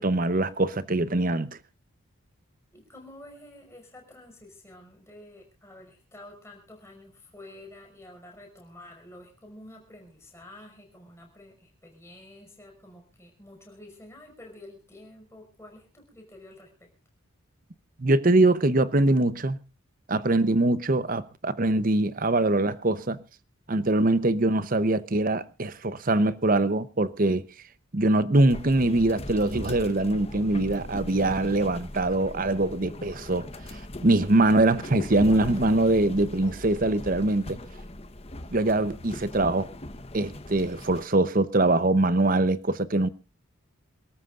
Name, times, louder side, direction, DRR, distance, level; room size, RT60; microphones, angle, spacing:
voice 1, 0.0-1.6 18.0-19.6 20.1-23.2 23.7-27.4 27.9-33.5 34.0-37.6 38.5-39.7 40.1-43.1, right 2 dB, 40° right, 0.8 m, -23 dB
voice 2, 2.7-16.9, left 1 dB, 15° left, 5.6 m, -49 dB
sound 1, 28.5-41.0, left 1 dB, 30° left, 1.0 m, -39 dB
28.0 x 13.5 x 2.5 m
head